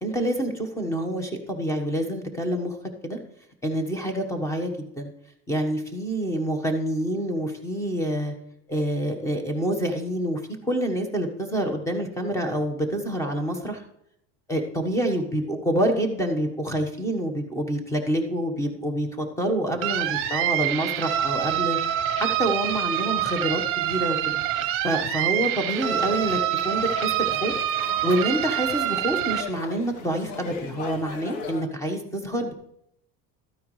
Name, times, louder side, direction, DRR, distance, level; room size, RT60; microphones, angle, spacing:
voice 1, 0.0-2.8 3.0-3.2 3.6-5.1 5.5-8.3 8.7-13.8 14.5-21.8 22.2-24.4 24.8-26.4 26.6-27.5 28.0-32.5, right 1 dB, 10° left, 5 dB, 1.2 m, -27 dB
sound 1, 19.8-29.4, right 11 dB, 40° right, 0.9 m, -26 dB
sound 2, 25.6-31.7, left 5 dB, 75° left, 1.4 m, -39 dB
13.0 x 9.5 x 3.2 m, 0.76 s
cardioid pair, 160°, 34 cm